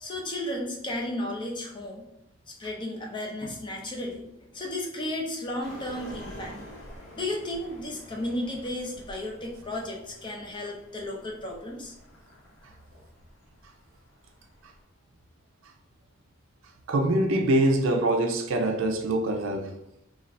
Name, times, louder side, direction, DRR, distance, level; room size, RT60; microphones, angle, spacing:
voice 1, 0.0-2.0 2.5-4.2 4.5-6.5 7.1-11.9, left 1 dB, 25° left, 0.5 m, -34 dB
sound 1, 5.6-14.8, equal, 80° left, 1.0 m, -48 dB
voice 2, 16.9-19.7, right 1 dB, 70° right, 0.4 m, -24 dB
2.5 x 2.3 x 3.2 m
head